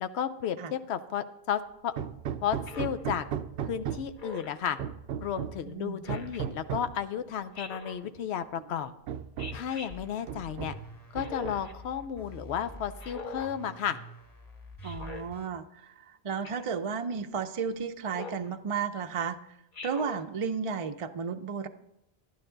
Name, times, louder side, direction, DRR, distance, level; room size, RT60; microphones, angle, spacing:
voice 1, 0.0-1.9 2.4-3.3 3.6-4.8 5.2-8.9 9.5-10.7 11.1-14.0, left 9 dB, 90° left, 10 dB, 0.9 m, -33 dB
Hammer, 2.0-4.2 4.8-5.7 6.1-7.0 8.0-8.1 8.5-8.7 9.1-9.7 10.3-10.9 11.2-11.8, right 9 dB, 80° right, 0.8 m, -36 dB
Speech synthesizer, 2.7-3.0 4.2-4.6 6.0-6.4 7.5-8.0 9.4-9.9 11.1-11.7 13.0-13.5 14.8-15.2 16.4-16.8 18.1-18.5 19.7-20.2, left 3 dB, 50° left, 1.2 m, -42 dB
voice 2, 5.7-6.0 14.8-19.6 19.8-21.7, right 6 dB, 40° right, 7 dB, 0.5 m, -33 dB
sound 1, 9.9-15.5, equal, 20° left, 1.2 m, -47 dB
12.0 x 11.0 x 3.9 m, 0.84 s
omnidirectional pair, 1.1 m